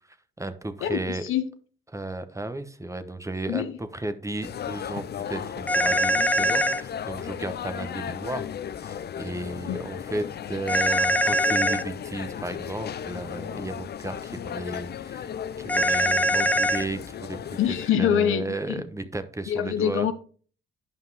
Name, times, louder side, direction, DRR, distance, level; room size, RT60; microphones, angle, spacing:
voice 1, 0.1-1.2 1.9-8.5 8.8-17.6 18.0-20.1, right 2 dB, 15° right, 1.0 m, -34 dB
voice 2, 0.8-1.4 3.5-3.7 9.7-9.8 17.6-18.8 19.5-20.1, left 9 dB, 80° left, 0.8 m, -25 dB
sound 1, 4.4-17.9, left 9 dB, 55° left, 0.5 m, -36 dB
sound 2, 5.7-6.8 10.7-11.8 15.7-16.8, equal, 5° left, 0.7 m, -22 dB
9.6 x 5.4 x 4.0 m
cardioid pair, 65°, 21 cm